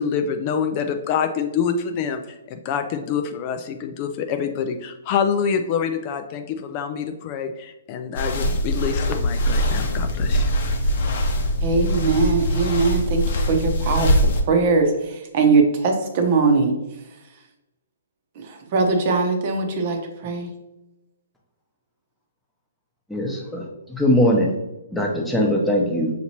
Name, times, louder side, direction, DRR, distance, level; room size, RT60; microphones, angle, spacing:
voice 1, 0.0-10.5, left 7 dB, 35° left, 7 dB, 0.3 m, -26 dB
sound 1, 8.2-14.4, equal, 55° left, 0.8 m, -22 dB
voice 2, 11.6-14.1 14.5-16.7 18.4-20.5, right 4 dB, 45° right, 4 dB, 0.8 m, -21 dB
voice 3, 23.1-24.5 24.9-26.1, equal, 5° left, -1 dB, 0.8 m, -21 dB
5.7 x 2.9 x 2.9 m, 0.99 s
hypercardioid pair, 135°, 0 cm